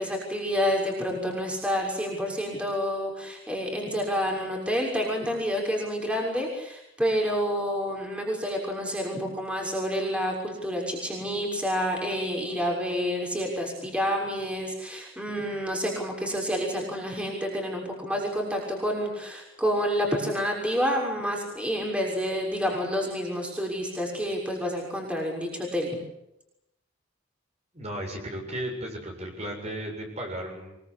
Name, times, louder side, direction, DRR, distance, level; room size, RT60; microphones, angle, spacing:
voice 1, 0.0-25.9, equal, 5° right, 0 dB, 6.4 m, -29 dB
voice 2, 27.7-30.8, right 1 dB, 35° right, 2 dB, 7.4 m, -35 dB
25.0 x 23.5 x 8.6 m, 0.84 s
head